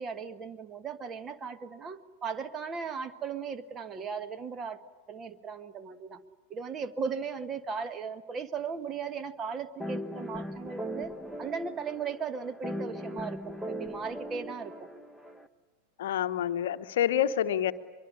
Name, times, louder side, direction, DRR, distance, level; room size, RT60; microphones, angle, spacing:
voice 1, 0.0-4.8 5.1-6.2 6.5-11.1 11.4-14.9, right 6 dB, 25° right, 11 dB, 1.4 m, -37 dB
sound 1, 9.8-15.5, equal, 5° right, 1.3 m, -39 dB
voice 2, 16.0-17.7, left 10 dB, 55° left, 11 dB, 0.9 m, -27 dB
24.0 x 23.5 x 10.0 m, 1.3 s
figure-of-eight pair, 90°, 0 cm